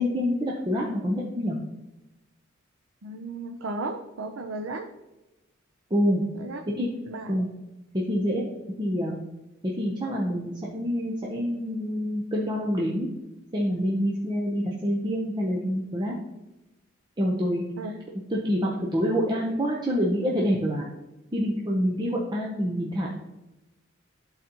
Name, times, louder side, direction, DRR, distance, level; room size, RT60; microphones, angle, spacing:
voice 1, 0.0-1.6 5.9-6.2 6.8-6.9 7.3-7.5 7.9-8.4 8.8-9.1 9.6-13.1 13.5-16.2 17.2-17.7 18.4-20.8 21.3-23.1, equal, 20° right, -3 dB, 0.8 m, -26 dB
voice 2, 3.0-4.9 6.4-6.6 7.1-7.3 17.8-17.9, right 2 dB, 90° right, 4 dB, 0.6 m, -34 dB
12.0 x 4.1 x 2.9 m, 1.0 s
head